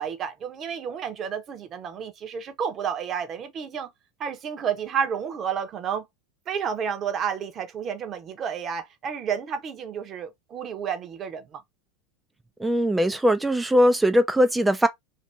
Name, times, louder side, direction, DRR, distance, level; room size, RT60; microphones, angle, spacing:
voice 1, 0.0-3.9 4.2-6.1 6.5-11.6, right 7 dB, 35° right, 0.8 m, -31 dB
voice 2, 12.6-14.9, equal, 10° right, 0.4 m, -20 dB
2.7 x 2.5 x 3.2 m
hypercardioid pair, 90°, 0 cm